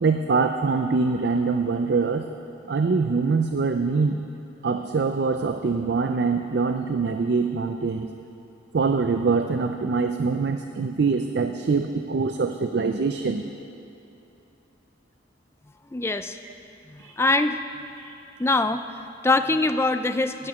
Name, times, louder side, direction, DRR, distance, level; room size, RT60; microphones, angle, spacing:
voice 1, 0.0-2.2 2.7-4.3 4.6-8.1 8.7-13.4 16.4-16.5 17.0-17.2 18.0-18.1, right 4 dB, 60° right, 6 dB, 0.4 m, -24 dB
voice 2, 15.9-16.4 16.9-17.6 18.4-20.5, left 2 dB, 15° left, 9 dB, 0.3 m, -23 dB
8.8 x 8.5 x 9.3 m, 2.9 s
head